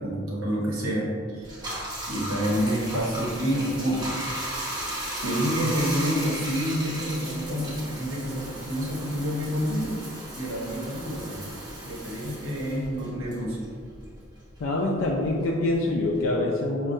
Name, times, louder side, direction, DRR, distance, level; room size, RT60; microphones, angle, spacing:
voice 1, 0.0-1.5 2.1-4.1 5.2-10.0 10.3-11.5 11.8-13.6, equal, 80° right, -4 dB, 0.9 m, -28 dB
Bathtub (filling or washing), 1.4-14.3 14.6-16.4, right 1 dB, 20° right, 0.7 m, -36 dB
voice 2, 14.6-16.9, left 2 dB, 65° left, -3 dB, 0.3 m, -25 dB
5.3 x 2.2 x 2.6 m, 2.1 s
head